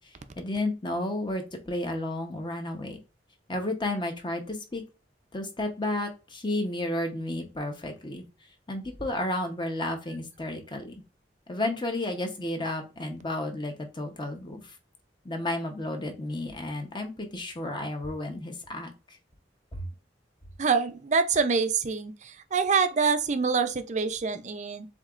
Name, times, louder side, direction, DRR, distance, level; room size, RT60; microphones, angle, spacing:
voice 1, 0.4-3.0 3.5-4.8 5.3-8.2 8.7-10.9 11.5-14.6 15.2-18.9 19.7-19.8, left 1 dB, 25° left, 0.9 m, -32 dB
voice 2, 20.6-24.9, right 5 dB, 40° right, 0.5 m, -26 dB
7.2 x 2.9 x 2.5 m
head